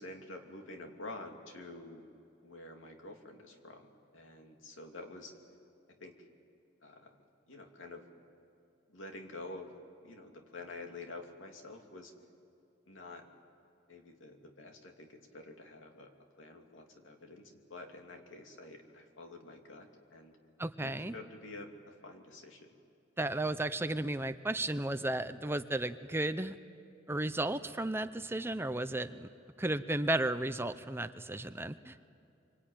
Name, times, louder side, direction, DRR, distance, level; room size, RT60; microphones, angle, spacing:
voice 1, 0.0-2.1 2.4-5.3 5.9-6.3 6.8-7.2 7.5-8.0 8.9-9.7 10.0-12.1 12.9-13.3 13.9-16.1 16.4-20.4 20.8-22.7 23.2-23.4, left 2 dB, 85° left, 3 dB, 2.6 m, -48 dB
voice 2, 20.6-21.1 23.2-26.5 27.1-29.3 29.6-32.0, right 1 dB, 10° right, 11 dB, 0.6 m, -34 dB
25.5 x 25.0 x 9.1 m, 2.6 s
head